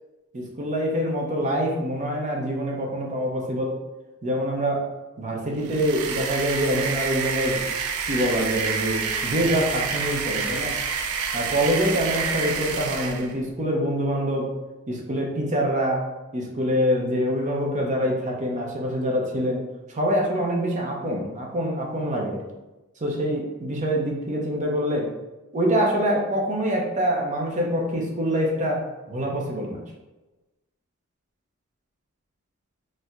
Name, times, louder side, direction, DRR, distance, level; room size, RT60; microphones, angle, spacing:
voice 1, 0.3-3.8 4.2-4.9 5.2-7.7 8.1-10.8 11.3-14.6 14.9-22.4 23.0-25.1 25.5-29.8, equal, 35° right, 0 dB, 0.6 m, -25 dB
sound 1, 5.6-13.3, right 5 dB, 80° right, 0.4 m, -28 dB
4.3 x 2.1 x 2.4 m, 1.1 s
head